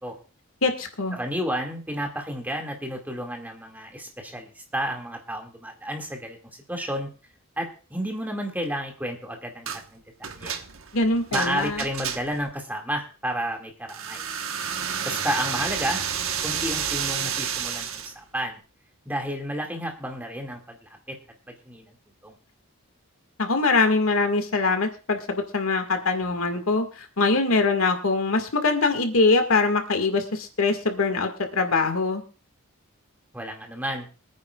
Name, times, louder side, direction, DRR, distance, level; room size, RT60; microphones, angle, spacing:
voice 1, 0.6-1.2 10.9-11.8 23.4-32.2, left 3 dB, 80° left, 6 dB, 1.9 m, -23 dB
voice 2, 1.1-6.4 6.7-7.1 7.6-10.0 10.3-10.5 11.3-14.3 15.0-16.0 16.4-18.6 19.1-21.2 21.5-21.9 22.2-22.4 33.3-34.1, equal, 10° right, 2 dB, 2.1 m, -31 dB
sound 1, 9.7-9.9 10.2-12.5 13.9-18.1, right 8 dB, 70° right, 1.2 m, -30 dB
25.0 x 9.5 x 2.4 m, 0.35 s
head